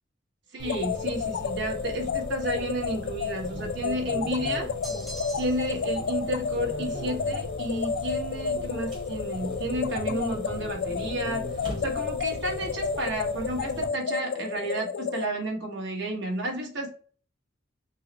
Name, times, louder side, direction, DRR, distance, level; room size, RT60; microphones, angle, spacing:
voice 1, 0.5-4.7 5.4-11.5 11.8-16.9, right 1 dB, 65° right, 1 dB, 1.1 m, -32 dB
sound 1, 0.6-15.3, left 6 dB, 65° left, 0.3 m, -31 dB
sound 2, 0.6-13.9, right 1 dB, 25° right, 0.9 m, -39 dB
sound 3, 4.8-5.8, right 1 dB, ahead, 0.5 m, -42 dB
3.9 x 2.0 x 3.9 m, 0.41 s
head